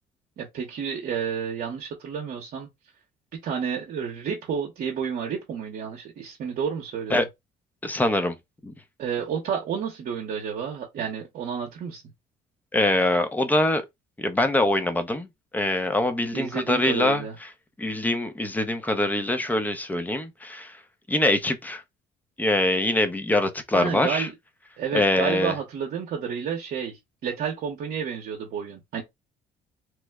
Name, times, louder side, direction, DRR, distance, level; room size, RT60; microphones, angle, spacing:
voice 1, 0.4-2.7 3.4-7.2 9.0-12.0 16.3-17.4 23.7-24.3 24.8-29.0, right 7 dB, 60° right, 0.8 m, -30 dB
voice 2, 7.8-8.3 8.6-8.7 12.7-13.8 14.2-15.3 15.5-17.2 17.8-20.8 21.1-21.8 22.4-24.3 24.9-25.5, left 1 dB, 10° left, 0.6 m, -24 dB
3.1 x 2.1 x 3.4 m
cardioid pair, 110°, 17 cm